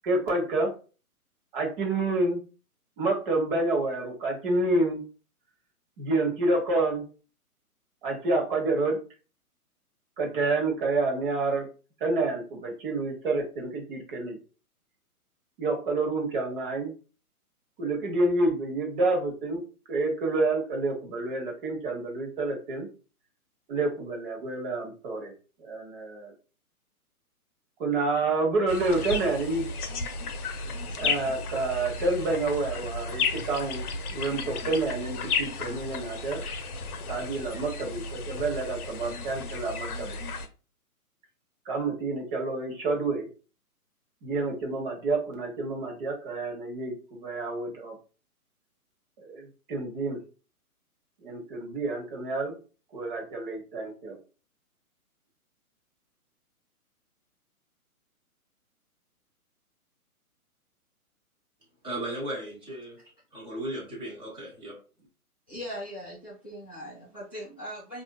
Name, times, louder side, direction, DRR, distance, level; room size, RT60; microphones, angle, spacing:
voice 1, 0.0-0.7 1.5-2.4 3.0-5.0 6.0-7.0 8.0-9.0 10.2-11.7 12.0-14.4 15.6-16.9 17.8-19.6 19.9-22.9 23.7-25.3 25.6-26.3 27.8-29.7 31.0-33.9 34.1-36.4 37.1-40.2 41.7-43.3 44.2-48.0 49.2-50.2 51.2-52.6 52.9-54.2, right 2 dB, 35° right, 2 dB, 1.0 m, -28 dB
sound 1, 28.7-40.5, left 4 dB, 80° left, 0.7 m, -33 dB
voice 2, 61.8-63.0 63.3-64.8, right 1 dB, 10° right, -3 dB, 1.0 m, -36 dB
voice 3, 65.5-68.0, equal, 10° left, -13 dB, 0.4 m, -40 dB
4.2 x 2.6 x 2.2 m, 0.35 s
hypercardioid pair, 135°, 45 cm